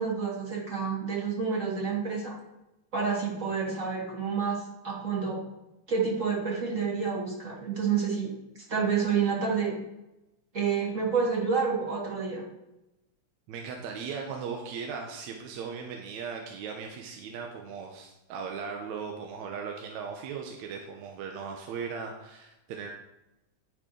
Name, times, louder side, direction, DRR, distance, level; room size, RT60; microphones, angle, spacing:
voice 1, 0.0-2.3 2.9-5.4 5.9-8.3 8.7-9.8 10.5-12.4, right 5 dB, 35° right, -2 dB, 1.4 m, -29 dB
voice 2, 13.5-22.9, right 6 dB, 75° right, 2 dB, 2.1 m, -38 dB
9.4 x 6.2 x 5.1 m, 0.94 s
omnidirectional pair, 3.4 m